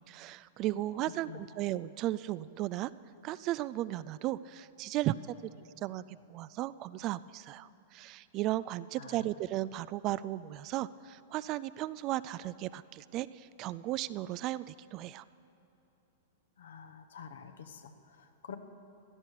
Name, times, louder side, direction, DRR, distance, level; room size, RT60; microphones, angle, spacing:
voice 1, 0.1-2.9 3.2-5.2 5.6-15.2, right 15 dB, 40° right, 17 dB, 0.3 m, -35 dB
voice 2, 9.0-9.3 16.6-18.6, left 7 dB, 70° left, 7 dB, 1.1 m, -48 dB
17.0 x 12.0 x 6.5 m, 2.9 s
figure-of-eight pair, 100°, 0 cm